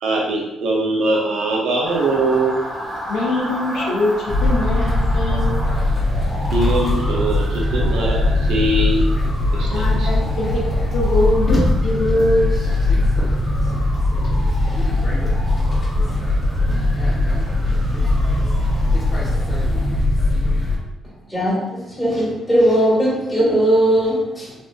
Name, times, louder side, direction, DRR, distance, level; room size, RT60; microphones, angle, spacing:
voice 1, 0.0-2.6 6.5-9.0 9.5-10.1, right 2 dB, 80° right, -2 dB, 0.5 m, -21 dB
Motor vehicle (road) / Siren, 1.8-19.9, equal, 30° right, 1.3 m, -34 dB
voice 2, 3.1-5.6 9.7-10.6 10.9-12.5, left 1 dB, 75° left, -3 dB, 0.7 m, -22 dB
sound 1, 4.3-20.8, left 2 dB, 30° left, 0.7 m, -19 dB
voice 3, 21.3-24.5, right 1 dB, 10° left, -6 dB, 1.5 m, -18 dB
3.5 x 2.6 x 2.2 m, 0.95 s
cardioid pair, 90°, 0 cm